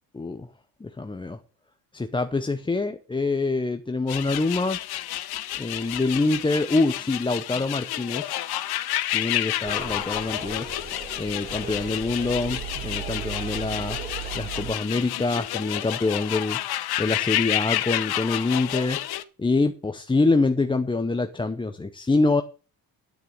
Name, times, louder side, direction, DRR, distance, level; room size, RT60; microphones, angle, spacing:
voice 1, 0.1-0.5 0.8-1.4 1.9-4.8 5.6-8.3 9.1-10.7 11.2-14.0 14.3-16.6 17.0-19.0 19.4-22.4, left 3 dB, 10° left, 0.7 m, -25 dB
sound 1, 4.1-19.2, left 14 dB, 70° left, 1.0 m, -30 dB
sound 2, 9.6-14.7, right 6 dB, 20° right, 3.6 m, -36 dB
9.6 x 9.1 x 6.6 m
cardioid pair, 115°, 39 cm